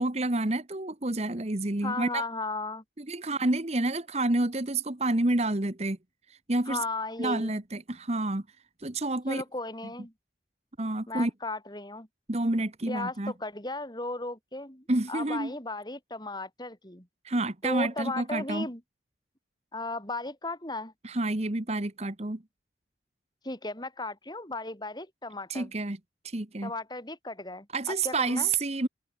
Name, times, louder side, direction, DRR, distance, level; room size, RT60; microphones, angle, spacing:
voice 1, 0.0-2.2 3.0-6.0 6.5-6.8 7.2-8.4 8.8-9.4 10.8-11.3 12.3-13.3 14.9-15.5 17.2-18.7 21.0-22.4 25.5-26.0 26.2-26.7 27.7-28.9, right 2 dB, 35° right, 1.4 m, -29 dB
voice 2, 1.8-2.8 6.6-7.6 9.3-10.1 11.1-12.1 12.9-17.1 17.6-18.8 19.7-20.9 23.4-25.7 26.6-28.5, left 2 dB, 25° left, 5.1 m, -36 dB
open air
head